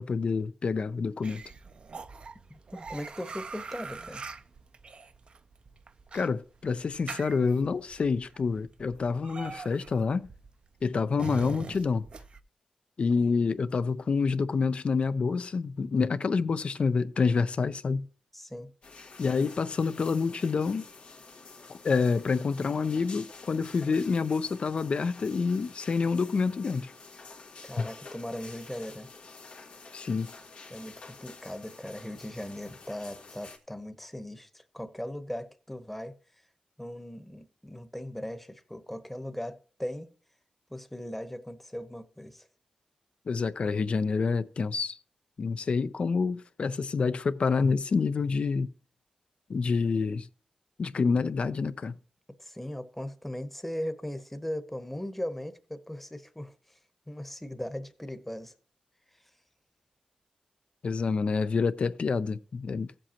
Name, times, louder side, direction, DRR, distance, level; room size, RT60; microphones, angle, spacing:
voice 1, 0.0-1.4 6.1-10.3 10.8-12.1 13.0-18.1 19.2-20.9 21.7-26.9 29.9-30.3 43.3-45.0 45.4-48.7 49.5-50.3 50.8-52.0 60.8-62.9, left 4 dB, 60° left, 0.5 m, -27 dB
sound 1, 1.2-12.4, right 4 dB, 55° right, 0.6 m, -43 dB
voice 2, 2.5-4.2 18.3-18.7 27.6-29.1 30.7-36.1 36.8-40.1 40.7-42.5 52.4-56.8 57.1-58.5, left 1 dB, 5° left, 1.0 m, -38 dB
sound 2, 18.8-33.6, left 4 dB, 85° left, 1.6 m, -49 dB
15.5 x 7.7 x 2.9 m
cardioid pair, 75°, 2 cm